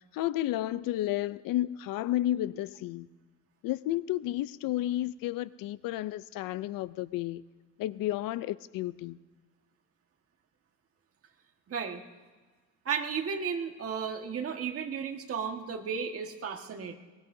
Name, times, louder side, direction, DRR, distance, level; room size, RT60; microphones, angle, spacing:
voice 1, 0.1-3.1 3.6-7.4 7.8-9.2, left 14 dB, 85° left, 0.6 m, -32 dB
voice 2, 11.7-12.0 12.8-17.0, right 6 dB, 45° right, 1.6 m, -34 dB
23.5 x 20.0 x 2.7 m
cardioid pair, 135°, 33 cm